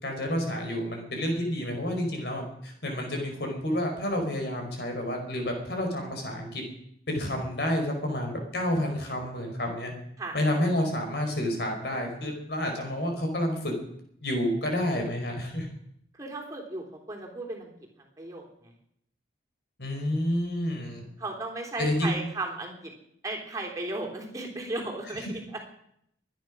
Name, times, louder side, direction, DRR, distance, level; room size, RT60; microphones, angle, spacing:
voice 1, 0.0-6.6 7.1-9.9 10.3-13.7 14.2-15.7 19.8-21.0 21.8-22.3 25.2-25.3, left 1 dB, 60° left, 3 dB, 4.6 m, -29 dB
voice 2, 16.1-17.7 18.2-18.7 21.2-22.9 23.2-25.4, right 2 dB, 20° right, -1 dB, 3.4 m, -35 dB
23.5 x 9.7 x 6.2 m, 0.72 s
head